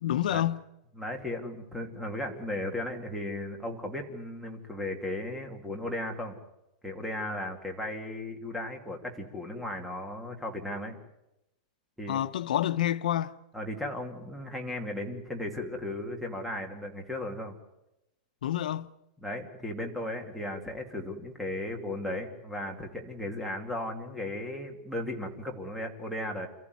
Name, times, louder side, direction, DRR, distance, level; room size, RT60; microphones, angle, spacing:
voice 1, 0.0-0.6 12.1-13.3 18.4-18.9, left 12 dB, 85° left, 0.8 m, -28 dB
voice 2, 1.0-6.3 6.8-11.0 12.0-12.2 13.5-17.5 19.2-26.5, left 1 dB, ahead, 2.5 m, -36 dB
28.5 x 14.5 x 9.5 m
supercardioid pair, 165°, 4 cm